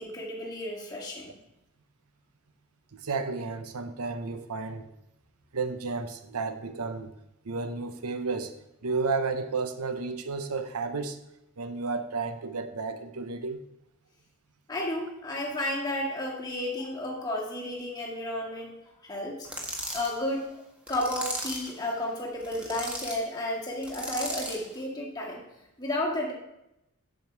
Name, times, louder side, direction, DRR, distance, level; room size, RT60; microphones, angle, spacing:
voice 1, 0.0-1.4 14.7-18.8 19.0-19.5 19.9-20.6 20.9-25.4 25.8-26.3, left 1 dB, 20° left, -3 dB, 1.8 m, -32 dB
voice 2, 2.9-4.9 5.5-7.1 7.4-8.5 8.8-11.2 11.6-13.6, right 4 dB, 90° right, 9 dB, 0.8 m, -32 dB
sound 1, 19.4-20.1 20.9-21.7 22.4-23.2 23.8-24.6, equal, 5° right, 1.3 m, -36 dB
7.7 x 7.7 x 4.6 m, 0.87 s
head